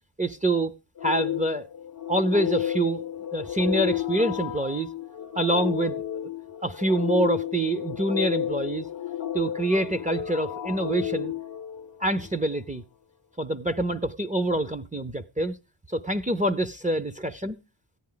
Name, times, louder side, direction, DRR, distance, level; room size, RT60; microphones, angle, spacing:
voice 1, 0.2-0.7 1.0-1.7 2.1-3.0 3.3-4.9 5.4-6.0 6.6-8.9 9.3-11.3 12.0-12.8 13.4-15.6 15.9-17.6, right 1 dB, 15° right, 0.5 m, -26 dB
sound 1, 1.0-12.3, left 11 dB, 50° left, 0.6 m, -32 dB
14.0 x 9.6 x 3.8 m
wide cardioid pair, 115°, 47 cm